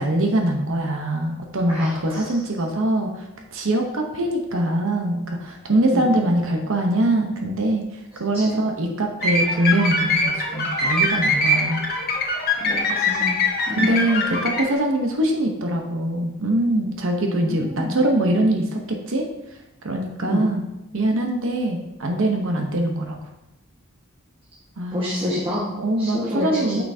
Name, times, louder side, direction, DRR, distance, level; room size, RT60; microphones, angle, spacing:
voice 1, 0.0-11.9 13.7-19.2 19.8-20.6 20.9-23.2 24.8-25.1 25.8-26.8, right 1 dB, 65° right, 2 dB, 0.9 m, -23 dB
voice 2, 1.7-2.3 5.9-6.1 8.3-8.6 12.6-13.4 13.7-13.9 17.4-18.0 20.3-20.4 24.9-25.7 26.0-26.8, left 1 dB, 25° right, -8 dB, 1.4 m, -28 dB
sound 1, 9.2-14.7, left 2 dB, 45° left, 1.2 m, -22 dB
8.9 x 5.8 x 2.7 m, 0.94 s
head